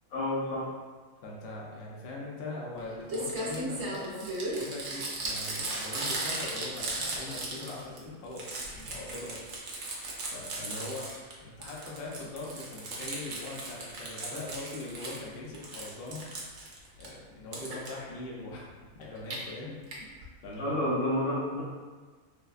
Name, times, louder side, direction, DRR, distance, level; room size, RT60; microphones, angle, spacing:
voice 1, 0.1-0.7 20.6-21.6, left 1 dB, 85° left, -9 dB, 1.6 m, -29 dB
voice 2, 1.2-9.4 9.7-10.0 10.3-18.6 19.0-20.2 20.4-20.9, left 2 dB, 60° left, -4 dB, 0.6 m, -41 dB
Crumpling crinkling, 2.8-2.9 3.1-8.0 8.3-11.3 11.6-15.2 15.5-17.1 17.5-17.9 19.0-19.4 19.9-20.0 20.2-20.3 20.5-20.6, right 2 dB, 65° right, 0.8 m, -36 dB
3.3 x 2.1 x 2.3 m, 1.4 s
omnidirectional pair, 1.4 m